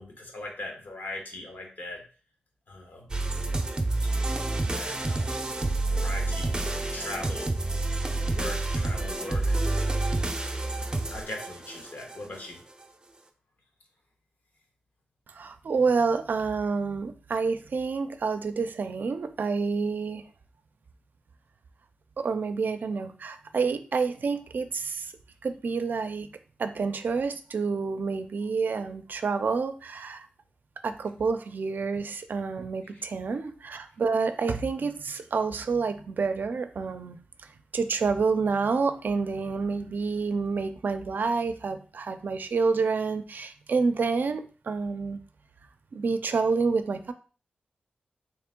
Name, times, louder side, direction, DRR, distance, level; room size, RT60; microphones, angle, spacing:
voice 1, 0.0-2.1 2.7-3.1 4.7-7.6 8.3-9.6 10.6-12.6 32.9-33.0, left 2 dB, 65° left, 2 dB, 1.2 m, -40 dB
sound 1, 3.1-12.2, right 2 dB, 25° right, 0.6 m, -28 dB
voice 2, 15.3-20.2 22.2-25.1 25.4-30.3 30.8-45.2 45.9-47.1, right 4 dB, 65° right, 9 dB, 0.4 m, -28 dB
3.4 x 3.0 x 3.7 m, 0.38 s
wide cardioid pair, 75°, 3 cm